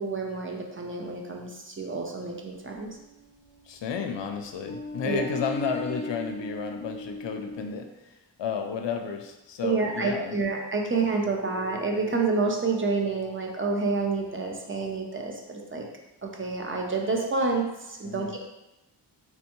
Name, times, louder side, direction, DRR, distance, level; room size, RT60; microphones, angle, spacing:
voice 1, 0.0-2.9 5.0-5.2 9.6-15.8 16.2-18.4, right 4 dB, 25° right, 1 dB, 0.5 m, -28 dB
sound 1, 2.5-4.2 4.6-7.7, left 1 dB, 15° left, 0.7 m, -38 dB
voice 2, 3.7-7.9 8.4-10.4 18.0-18.4, left 6 dB, 70° left, 4 dB, 0.5 m, -32 dB
sound 2, 11.1-15.9, left 1 dB, 65° right, 1.1 m, -50 dB
3.3 x 3.2 x 3.0 m, 0.94 s
wide cardioid pair, 110°, 46 cm